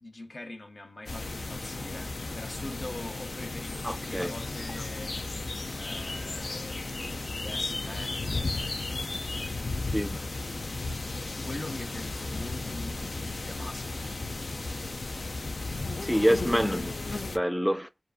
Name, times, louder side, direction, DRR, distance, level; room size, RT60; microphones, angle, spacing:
voice 1, 0.0-5.2 5.8-9.4 9.9-10.5 11.5-14.1, left 2 dB, 60° left, 0.8 m, -43 dB
sound 1, 1.1-17.4, left 3 dB, 80° left, 0.4 m, -34 dB
voice 2, 3.8-4.3 9.9-10.1 16.0-16.9 17.3-17.9, equal, ahead, 0.4 m, -26 dB
2.5 x 2.4 x 2.2 m
wide cardioid pair, 50°, 0 cm